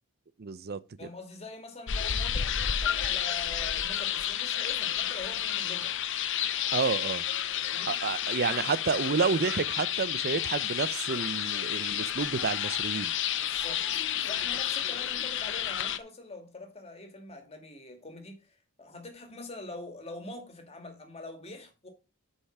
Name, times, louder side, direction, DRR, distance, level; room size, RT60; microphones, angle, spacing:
voice 1, 0.4-0.8 6.7-7.3 7.9-13.1, right 5 dB, 45° right, 0.5 m, -30 dB
voice 2, 1.0-5.9 7.6-7.9 13.3-13.9 14.2-21.9, left 2 dB, 25° left, 2.2 m, -44 dB
sound 1, 1.9-16.0, left 10 dB, 55° left, 0.7 m, -31 dB
8.3 x 5.5 x 5.9 m
head